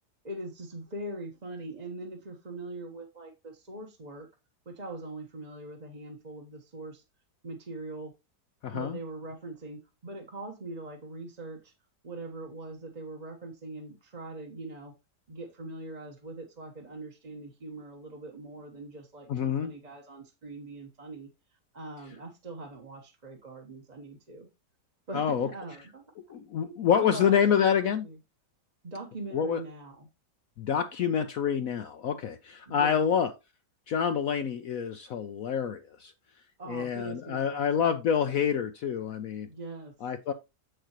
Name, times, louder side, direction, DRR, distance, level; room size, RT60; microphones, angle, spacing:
voice 1, 0.2-4.3 4.6-7.0 7.4-8.1 8.7-11.7 12.0-14.9 15.3-21.3 21.7-24.5 25.1-26.1 26.6-28.2 28.8-30.1 32.7-33.1 36.6-37.9 39.5-39.9, right 2 dB, 25° right, 1.1 m, -42 dB
voice 2, 8.6-9.0 19.3-19.7 25.1-25.5 26.3-28.0 29.3-29.6 30.6-33.3 33.9-36.1 36.7-39.5 40.0-40.3, left 8 dB, 65° left, 0.9 m, -27 dB
7.7 x 6.5 x 3.0 m
omnidirectional pair, 1.9 m